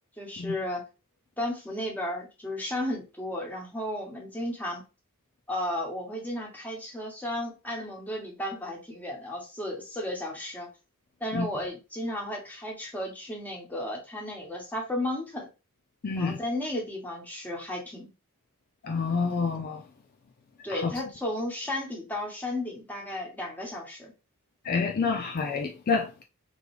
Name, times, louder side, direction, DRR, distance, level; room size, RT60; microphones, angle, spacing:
voice 1, 0.2-0.8 1.4-4.8 5.5-10.7 11.2-15.5 16.1-18.1 20.6-24.1, left 1 dB, 10° left, 1.3 m, -34 dB
voice 2, 16.0-16.4 18.8-19.8 20.7-20.9 24.6-26.2, left 4 dB, 45° left, 0.4 m, -28 dB
3.8 x 3.2 x 3.2 m
head